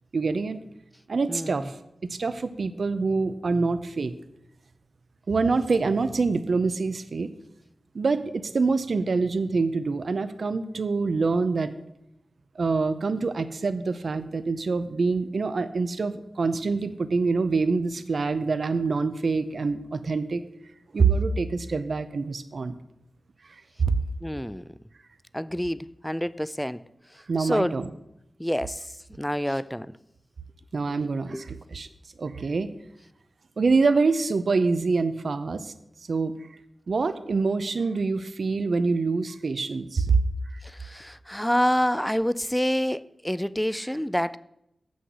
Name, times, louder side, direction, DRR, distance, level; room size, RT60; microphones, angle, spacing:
voice 1, 0.1-0.6 1.1-1.7 2.1-4.1 5.3-7.3 7.9-11.7 12.6-20.4 20.9-22.8 23.8-24.0 27.3-27.9 30.7-31.9 32.2-32.7 33.6-35.7 36.1-36.4 36.9-40.2, right 4 dB, 65° right, 0.6 m, -25 dB
voice 2, 1.3-1.7 24.2-24.8 25.3-26.8 27.4-27.8 28.4-30.0 31.3-31.6 40.6-44.4, equal, 5° left, 0.3 m, -28 dB
7.8 x 6.3 x 6.9 m
wide cardioid pair, 110°, 0 cm